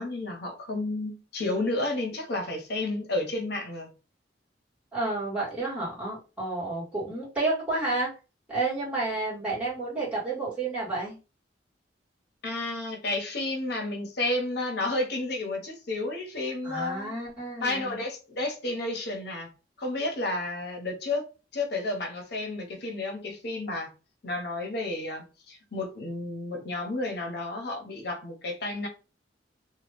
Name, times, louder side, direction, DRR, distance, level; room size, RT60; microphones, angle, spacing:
voice 1, 0.0-3.9 12.4-17.1 17.6-19.5 19.8-21.2 21.5-23.9 24.2-28.9, left 2 dB, 65° left, 0.9 m, -31 dB
voice 2, 4.9-8.1 8.5-11.2 16.6-18.0, right 2 dB, 5° right, 1.7 m, -30 dB
2.9 x 2.3 x 3.4 m
head